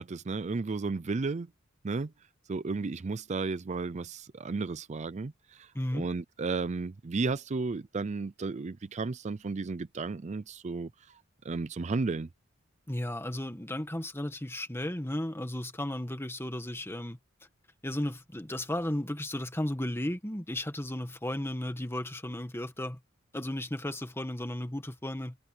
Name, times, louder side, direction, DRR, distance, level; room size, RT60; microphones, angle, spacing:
voice 1, 0.0-1.5 1.8-2.1 2.5-12.3, right 3 dB, 35° right, 0.5 m, -33 dB
voice 2, 5.7-6.1 12.9-17.2 17.8-23.0 23.3-25.4, left 1 dB, 10° left, 1.6 m, -34 dB
head